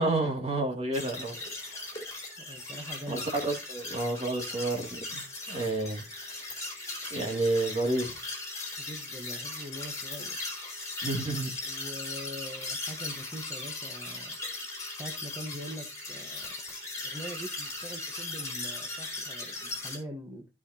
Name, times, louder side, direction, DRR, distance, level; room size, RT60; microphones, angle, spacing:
voice 1, 0.0-1.4 3.1-6.0 7.1-8.1 11.0-11.5, right 2 dB, 35° right, 2.5 m, -30 dB
sound 1, 0.9-20.0, left 2 dB, 20° left, 4.4 m, -38 dB
voice 2, 2.4-3.3 8.8-10.5 11.6-14.4 15.0-16.5 17.0-20.5, equal, 20° right, 1.2 m, -43 dB
15.0 x 5.9 x 2.8 m
head